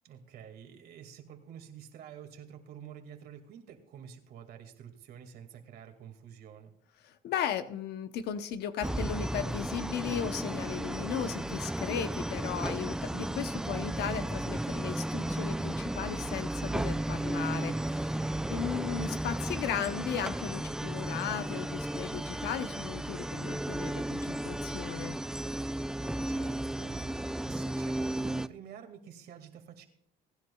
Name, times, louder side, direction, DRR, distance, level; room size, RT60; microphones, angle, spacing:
voice 1, 0.0-6.7 18.5-18.8 26.3-29.8, right 8 dB, 70° right, 5 dB, 2.1 m, -49 dB
voice 2, 7.0-25.2, left 8 dB, 75° left, 10 dB, 0.8 m, -36 dB
sound 1, 8.8-28.5, right 1 dB, 5° right, 0.4 m, -34 dB
22.0 x 10.5 x 2.3 m, 0.72 s
cardioid pair, 110°, 17 cm